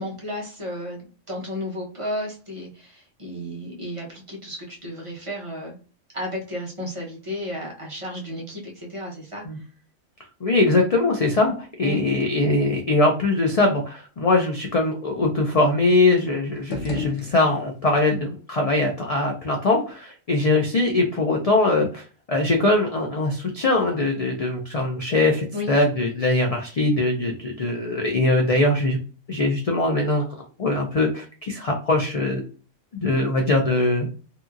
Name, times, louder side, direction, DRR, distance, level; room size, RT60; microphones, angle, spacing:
voice 1, 0.0-5.8 6.1-9.4 11.8-12.0 25.5-25.7, left 1 dB, 30° right, -3 dB, 0.8 m, -33 dB
voice 2, 10.4-29.0 29.3-32.4 33.0-34.1, left 2 dB, 65° left, 2 dB, 0.3 m, -22 dB
sound 1, 16.5-18.0, left 4 dB, 85° left, 1.0 m, -34 dB
2.8 x 2.7 x 2.4 m, 0.37 s
omnidirectional pair, 1.3 m